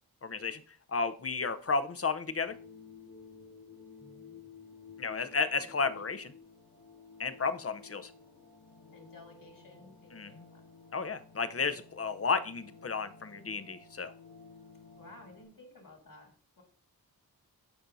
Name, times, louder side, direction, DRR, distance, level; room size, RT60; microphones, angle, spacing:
voice 1, 0.2-0.6 0.9-2.5 5.0-6.3 7.2-8.1 10.1-10.3 10.9-14.1, left 4 dB, 40° left, 12 dB, 0.7 m, -32 dB
sound 1, 2.4-15.4, left 5 dB, 90° left, 3.0 m, -54 dB
voice 2, 4.0-4.4 5.7-6.0 8.9-10.6 15.0-16.6, left 2 dB, 60° left, 1 dB, 2.3 m, -55 dB
11.5 x 4.3 x 2.7 m, 0.43 s
cardioid pair, 50°, 37 cm